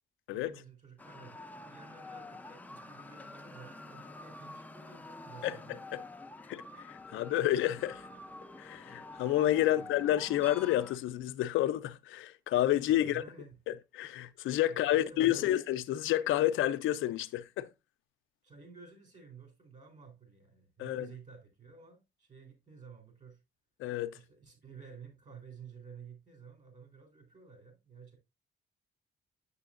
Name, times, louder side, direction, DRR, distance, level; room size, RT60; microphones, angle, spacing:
voice 1, 0.3-5.8 9.6-10.0 12.8-13.6 14.7-15.6 18.4-23.4 24.1-28.2, right 6 dB, 35° right, 3.3 m, -53 dB
sound 1, 1.0-11.0, left 2 dB, 10° left, 0.5 m, -48 dB
voice 2, 6.5-8.0 8.6-13.2 13.7-17.7 20.8-21.1 23.8-24.1, left 13 dB, 80° left, 0.5 m, -30 dB
6.9 x 6.7 x 2.4 m
cardioid pair, 90°, 20 cm